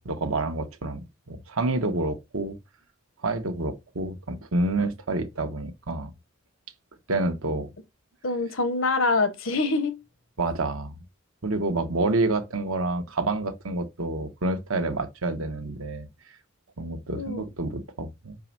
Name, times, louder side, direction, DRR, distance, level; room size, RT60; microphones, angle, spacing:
voice 1, 0.0-2.6 3.2-6.1 7.1-7.7 10.4-11.0 11.4-16.1 16.8-18.4, right 2 dB, 80° right, 1.0 m, -28 dB
voice 2, 8.2-10.0 17.1-17.4, left 3 dB, 70° left, 1.0 m, -25 dB
5.2 x 4.7 x 5.9 m
head